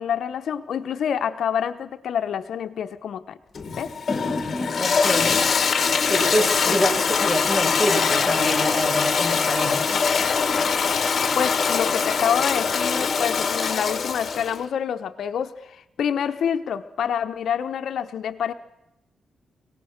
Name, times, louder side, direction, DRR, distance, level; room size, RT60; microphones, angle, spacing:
voice 1, 0.0-3.4 3.8-3.9 6.6-6.8 11.3-18.5, left 8 dB, 75° left, 9 dB, 0.9 m, -27 dB
Toilet flush, 3.5-14.6, left 5 dB, 50° left, 1.9 m, -22 dB
voice 2, 4.8-5.4 6.0-10.0, equal, 10° right, 2 dB, 6.8 m, -26 dB
28.0 x 18.5 x 6.5 m, 0.90 s
cardioid pair, 95°, 0 cm